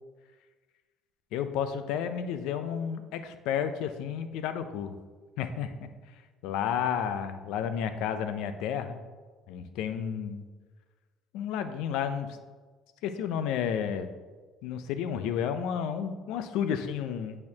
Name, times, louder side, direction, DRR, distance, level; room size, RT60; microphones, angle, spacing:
voice 1, 1.3-5.0 5.4-5.9 6.4-9.0 9.5-10.4 11.3-12.4 13.0-14.1 14.6-17.4, left 8 dB, 80° left, 9 dB, 0.5 m, -31 dB
8.5 x 4.4 x 2.8 m, 1.4 s
cardioid pair, 120°, 0 cm